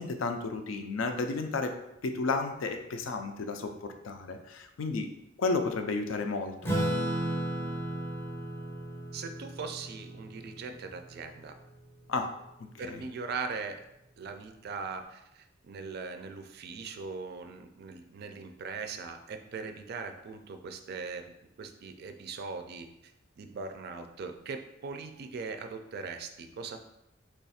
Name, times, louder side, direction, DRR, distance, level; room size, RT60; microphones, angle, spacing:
voice 1, 0.0-1.7 2.0-5.1 5.4-6.7 12.1-12.3 12.8-13.0, left 3 dB, 75° left, 6 dB, 0.4 m, -32 dB
Acoustic guitar / Strum, 6.6-11.5, right 1 dB, 10° left, 0.6 m, -34 dB
voice 2, 9.1-11.6 12.8-13.8 14.2-21.3 21.6-23.1 23.4-26.8, right 4 dB, 55° right, 7 dB, 0.3 m, -40 dB
3.2 x 2.4 x 4.1 m, 0.84 s
head